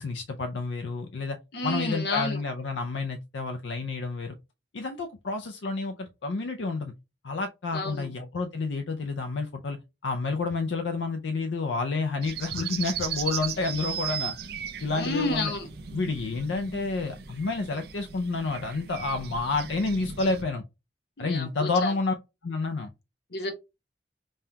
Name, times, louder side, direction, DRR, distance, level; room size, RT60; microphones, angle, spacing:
voice 1, 0.0-1.4 1.6-4.3 4.7-6.9 7.2-9.8 10.0-14.3 14.8-15.5 15.9-20.6 21.2-22.1 22.4-22.9, left 3 dB, 80° left, 0.5 m, -29 dB
voice 2, 1.5-2.4 7.7-8.1 14.9-15.7 21.2-21.9 23.3-23.5, left 2 dB, 60° left, 1.0 m, -30 dB
sound 1, 12.2-20.4, right 8 dB, 60° right, 0.6 m, -37 dB
5.4 x 2.2 x 2.8 m
head